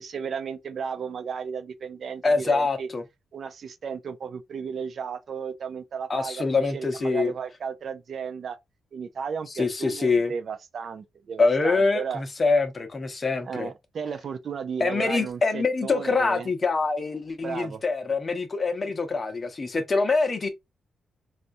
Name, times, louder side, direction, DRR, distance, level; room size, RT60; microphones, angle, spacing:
voice 1, 0.0-2.9 3.3-8.6 8.9-12.2 13.5-16.5 17.4-17.8, right 6 dB, 55° right, 0.4 m, -34 dB
voice 2, 2.2-3.0 6.1-7.3 9.5-10.3 11.4-13.7 14.8-20.5, left 3 dB, 30° left, 0.7 m, -25 dB
4.1 x 2.4 x 2.6 m
cardioid pair, 115°, 0 cm